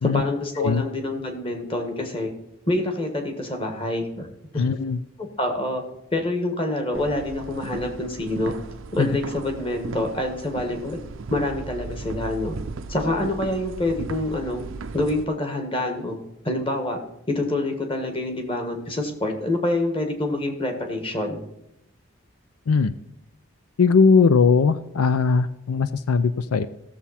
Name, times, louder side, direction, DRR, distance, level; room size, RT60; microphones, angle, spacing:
voice 1, 0.1-2.3 2.7-4.3 4.5-4.6 5.2-5.8 6.1-8.6 8.9-11.0 11.3-12.6 12.9-14.6 14.9-16.2 16.4-17.0 17.3-21.4, left 1 dB, 25° left, 4 dB, 1.6 m, -26 dB
voice 2, 4.5-5.0 9.0-9.1 22.7-22.9 23.8-26.7, left 5 dB, 85° left, 13 dB, 0.5 m, -19 dB
sound 1, 6.9-15.2, right 4 dB, 65° right, 0.5 m, -36 dB
15.5 x 7.1 x 4.3 m, 0.85 s
head